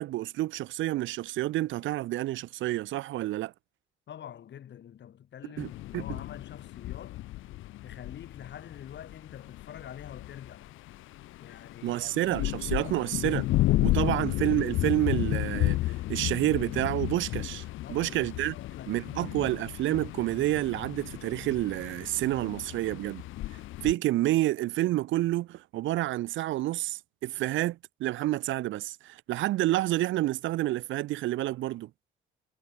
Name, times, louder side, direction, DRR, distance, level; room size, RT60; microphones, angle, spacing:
voice 1, 0.0-3.5 5.6-6.0 11.8-13.5 13.8-17.6 17.9-18.6 18.9-23.2 23.8-31.9, right 16 dB, 75° right, 0.5 m, -29 dB
voice 2, 4.1-7.2 7.8-10.8 11.4-12.0 12.4-13.0 13.8-14.2 17.8-18.2 18.5-19.6 23.8-24.0, left 9 dB, 65° left, 5.3 m, -46 dB
sound 1, 5.6-23.9, left 16 dB, 90° left, 1.1 m, -33 dB
cardioid pair, 90°, 20 cm